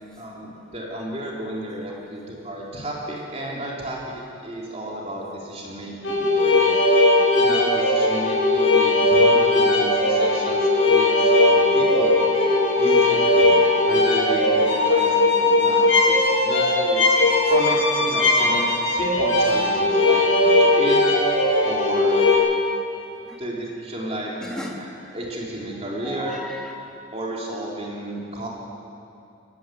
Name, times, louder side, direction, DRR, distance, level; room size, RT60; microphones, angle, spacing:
voice 1, 0.2-6.8 7.4-12.3 12.8-17.1 17.5-21.0 21.7-22.2 23.4-24.3 24.8-26.5 27.1-28.5, right 1 dB, 30° right, -3 dB, 3.7 m, -32 dB
sound 1, 6.0-22.4, left 2 dB, 70° left, 8.0 m, -18 dB
voice 2, 24.4-24.8 26.0-26.8, equal, 5° left, -2 dB, 3.0 m, -34 dB
23.5 x 15.5 x 9.4 m, 2.7 s
head